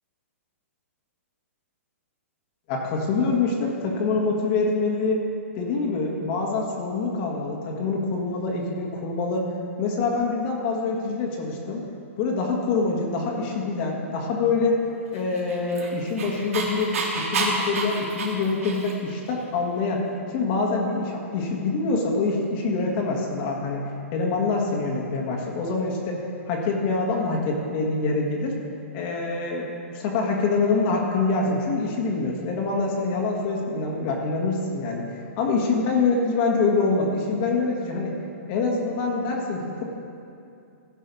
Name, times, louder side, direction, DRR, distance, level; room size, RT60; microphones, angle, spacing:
voice 1, 2.7-5.2 5.5-9.4 9.8-11.8 12.2-14.8 15.1-20.1 20.3-23.8 24.1-28.5 28.9-38.1 38.5-39.8, left 3 dB, 40° left, -1 dB, 1.7 m, -25 dB
Dog, 15.3-19.1, right 3 dB, 70° right, 2.0 m, -29 dB
15.0 x 5.5 x 5.4 m, 2.6 s
hypercardioid pair, 140°, 8 cm